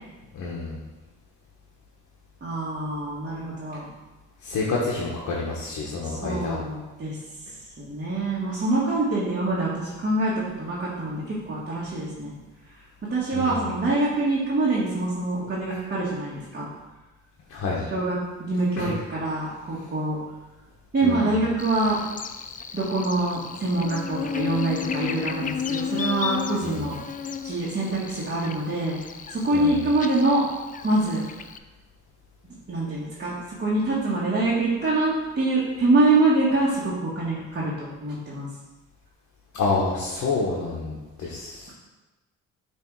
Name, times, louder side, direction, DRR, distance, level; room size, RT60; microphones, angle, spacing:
voice 1, 0.3-0.8 4.4-6.6 13.3-13.7 17.5-17.8 18.8-18.9 21.0-21.4 26.6-26.8 29.5-29.8 39.5-41.7, left 3 dB, 70° left, -4 dB, 1.3 m, -28 dB
voice 2, 2.4-3.9 6.0-7.2 7.8-12.3 13.0-16.7 17.9-20.2 20.9-22.0 22.7-27.0 27.4-29.0 29.3-30.4 30.8-31.2 32.7-38.5, right 2 dB, 35° right, -7 dB, 1.6 m, -25 dB
Buzz, 21.6-31.6, left 7 dB, 30° left, 0.3 m, -33 dB
7.2 x 3.4 x 4.8 m, 1.1 s
cardioid pair, 90°, 30 cm